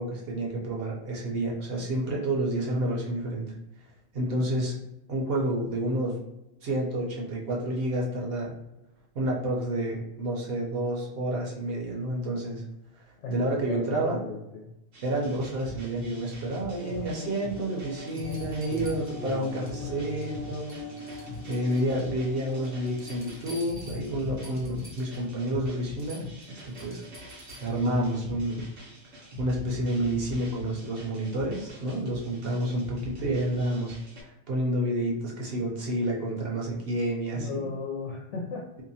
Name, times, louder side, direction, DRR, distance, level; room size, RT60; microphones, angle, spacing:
voice 1, 0.0-3.5 4.1-4.8 5.1-6.2 6.6-8.5 9.1-12.6 13.3-14.2 15.0-20.7 21.1-21.2 21.5-27.0 27.6-28.6 29.4-34.0 34.2-37.7, right 1 dB, 60° right, -3 dB, 0.8 m, -29 dB
voice 2, 13.2-14.7 18.6-18.9 19.2-20.4 37.3-38.7, left 4 dB, 75° left, -2 dB, 0.9 m, -37 dB
sound 1, 14.9-34.2, left 2 dB, 90° right, 1.2 m, -42 dB
sound 2, 16.8-24.7, left 2 dB, 50° left, 0.5 m, -42 dB
sound 3, 18.1-19.8 20.1-20.4 20.7-22.1 22.5-25.2 25.6-25.7 26.0-27.9 29.6-29.7, right 1 dB, 15° right, 0.4 m, -50 dB
2.7 x 2.1 x 2.7 m, 0.89 s
omnidirectional pair, 1.2 m